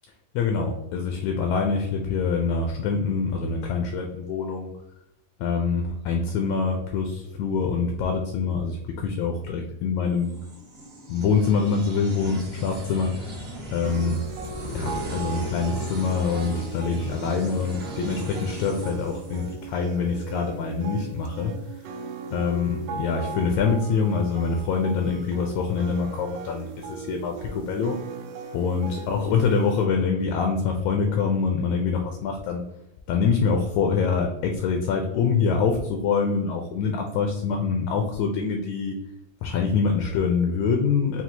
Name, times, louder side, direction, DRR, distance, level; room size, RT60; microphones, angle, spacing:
voice 1, 0.3-4.7 5.4-10.3 11.1-13.4 13.7-14.2 14.7-21.5 22.3-28.0 28.5-32.6 33.1-38.9 39.4-41.2, left 5 dB, 80° left, 3 dB, 1.6 m, -25 dB
sound 1, 10.2-19.9, right 1 dB, 60° right, 1.0 m, -37 dB
sound 2, 13.8-29.9, right 4 dB, 80° right, 2.0 m, -38 dB
5.8 x 2.4 x 2.7 m, 0.88 s
omnidirectional pair, 3.6 m